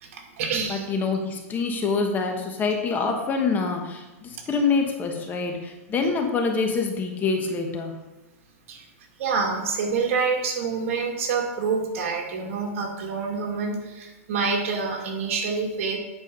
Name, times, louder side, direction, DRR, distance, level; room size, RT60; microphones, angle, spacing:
voice 1, 0.0-0.9 8.7-8.8 9.2-16.0, right 5 dB, 60° right, 2 dB, 2.1 m, -27 dB
voice 2, 0.7-7.9, left 4 dB, 20° left, 3 dB, 1.3 m, -26 dB
9.7 x 4.7 x 5.4 m, 1.1 s
hypercardioid pair, 135°, 8 cm